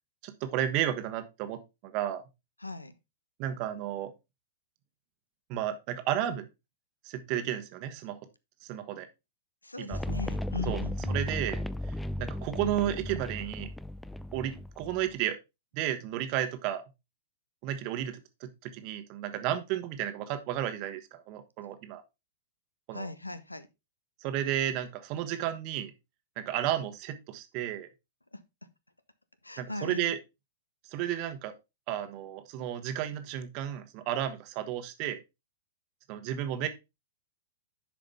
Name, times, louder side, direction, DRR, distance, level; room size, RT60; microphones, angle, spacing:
voice 1, 0.2-2.2 3.4-4.1 5.5-6.5 7.0-8.2 8.6-9.1 9.8-10.0 10.7-10.8 11.1-11.6 12.2-13.7 14.3-15.4 15.7-16.8 17.6-22.0 22.9-23.1 24.2-25.9 26.4-27.9 29.6-30.2 30.9-31.5 31.9-35.2 36.1-36.7, right 11 dB, 40° right, 1.2 m, -32 dB
voice 2, 2.6-2.9 9.6-11.2 22.9-23.7 28.3-28.4 29.4-30.1, left 2 dB, 85° left, 0.7 m, -39 dB
sound 1, 9.9-15.1, left 1 dB, 5° left, 0.4 m, -35 dB
10.5 x 5.0 x 3.4 m
figure-of-eight pair, 105°, 0 cm